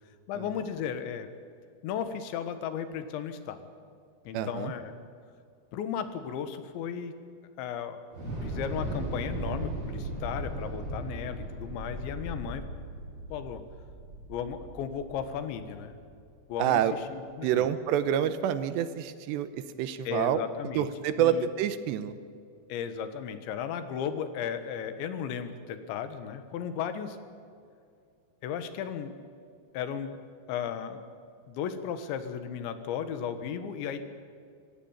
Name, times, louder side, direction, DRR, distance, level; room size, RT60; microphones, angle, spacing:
voice 1, 0.3-1.3 1.8-3.6 4.3-4.9 5.7-7.1 7.6-8.1 8.4-12.6 13.3-13.6 14.3-15.9 16.5-17.7 20.1-20.9 21.2-21.5 22.7-27.2 28.4-29.1 29.7-30.2 30.5-31.0 31.5-34.0, left 8 dB, 85° left, 10 dB, 3.7 m, -35 dB
voice 2, 4.3-4.7 16.6-16.9 17.4-20.4 20.8-22.2, right 10 dB, 80° right, 12 dB, 3.0 m, -27 dB
Thunder / Explosion, 8.1-16.3, right 1 dB, 25° right, 8.4 m, -37 dB
25.5 x 15.5 x 8.9 m, 2.3 s
omnidirectional pair, 5.1 m